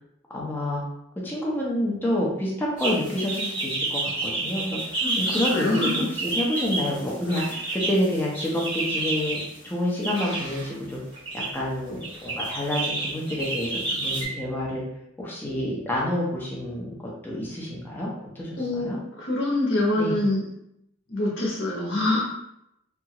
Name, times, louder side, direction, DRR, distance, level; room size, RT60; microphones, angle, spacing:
voice 1, 0.3-0.8 1.2-9.4 9.6-11.0 11.5-14.8 15.2-18.1 18.4-19.0 20.0-20.2, left 1 dB, 10° left, -5 dB, 0.5 m, -28 dB
sound 1, 2.8-9.5 10.0-10.7 11.1-11.5 12.0-14.3, right 2 dB, 25° right, 1.5 m, -29 dB
voice 2, 5.5-6.1 18.6-20.4 21.1-22.2, left 2 dB, 75° left, -3 dB, 0.9 m, -25 dB
2.8 x 2.4 x 2.8 m, 0.78 s
head